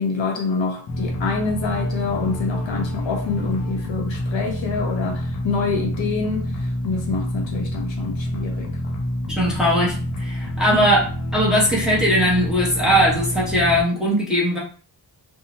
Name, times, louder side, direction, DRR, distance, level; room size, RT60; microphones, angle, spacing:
voice 1, 0.0-8.9, left 4 dB, 70° left, 0.8 m, -26 dB
sound 1, 0.9-13.8, equal, 40° left, 0.4 m, -27 dB
voice 2, 9.3-11.1 11.3-14.6, equal, ahead, 0.7 m, -19 dB
2.7 x 2.0 x 2.8 m
wide cardioid pair, 145°, 48 cm